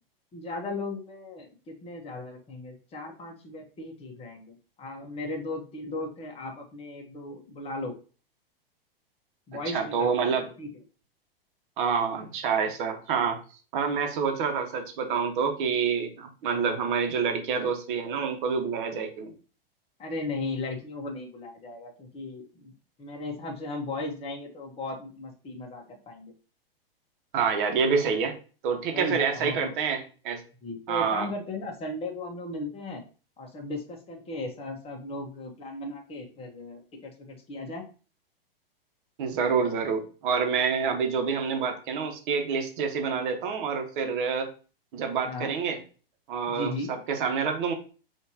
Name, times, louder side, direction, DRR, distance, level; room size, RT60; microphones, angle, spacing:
voice 1, 0.3-7.9 9.5-10.1 10.6-10.7 16.5-16.8 20.0-22.7 23.0-26.3 28.9-29.7 30.6-33.0 33.4-37.8 45.2-45.5 46.5-46.9, left 2 dB, 20° left, 0 dB, 1.2 m, -36 dB
voice 2, 9.7-10.5 11.8-13.4 13.7-19.3 27.3-28.4 28.6-30.4 30.9-31.3 39.2-44.5 44.9-45.8 46.3-47.7, right 6 dB, 55° right, 4 dB, 1.2 m, -27 dB
5.8 x 2.9 x 2.8 m, 0.36 s
hypercardioid pair, 115°, 30 cm